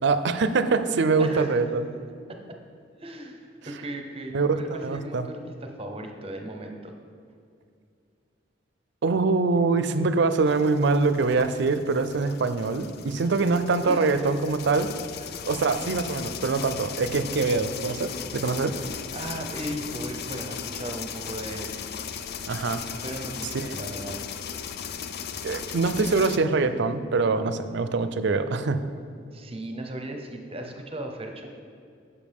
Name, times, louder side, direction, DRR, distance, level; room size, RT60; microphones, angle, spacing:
voice 1, 0.0-1.9 4.3-5.2 9.0-14.9 15.4-18.8 22.5-22.8 23.5-23.7 25.4-28.8, right 4 dB, 65° right, 11 dB, 0.5 m, -24 dB
voice 2, 1.2-1.6 2.3-2.6 3.0-6.9 13.9-14.3 15.3-15.4 19.1-21.7 23.0-24.2 29.3-31.6, right 1 dB, 30° right, 4 dB, 0.8 m, -37 dB
sound 1, 10.5-26.4, left 7 dB, 55° left, 0.4 m, -37 dB
10.0 x 7.0 x 3.5 m, 2.3 s
head